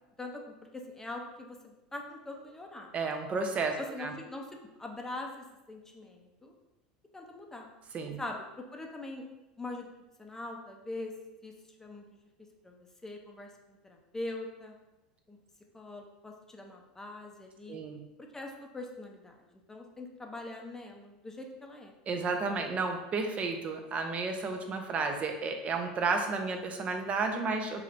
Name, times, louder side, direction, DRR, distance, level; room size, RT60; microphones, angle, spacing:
voice 1, 0.2-2.9 3.8-4.5 4.8-6.5 7.1-7.7 8.2-9.2 9.6-9.9 10.2-11.1 11.4-11.5 11.8-12.0 12.6-14.8 15.3-15.4 15.7-17.8 18.3-19.3 19.7-21.9, left 2 dB, 10° left, 1 dB, 0.7 m, -42 dB
voice 2, 2.9-4.1 7.9-8.2 17.7-18.0 22.1-27.8, right 4 dB, 35° right, 4 dB, 0.7 m, -32 dB
4.5 x 3.2 x 2.5 m, 1.0 s
hypercardioid pair, 95°, 4 cm